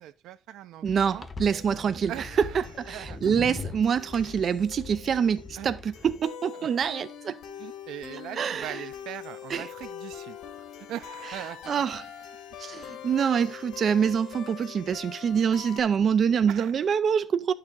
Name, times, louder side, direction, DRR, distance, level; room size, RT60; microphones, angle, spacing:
voice 1, 0.0-1.3 2.1-3.2 5.6-5.7 6.5-6.7 7.6-10.4 10.7-11.8 16.5-16.7, right 12 dB, 85° right, 0.7 m, -40 dB
voice 2, 0.8-2.1 2.8-7.4 8.4-8.8 9.5-9.7 11.7-12.0 12.6-17.5, right 7 dB, 45° right, 0.5 m, -26 dB
sound 1, 0.9-6.2, left 4 dB, 20° left, 0.9 m, -41 dB
sound 2, 1.4-15.8, left 9 dB, 70° left, 2.0 m, -44 dB
11.0 x 6.7 x 3.8 m
cardioid pair, 130°, 0 cm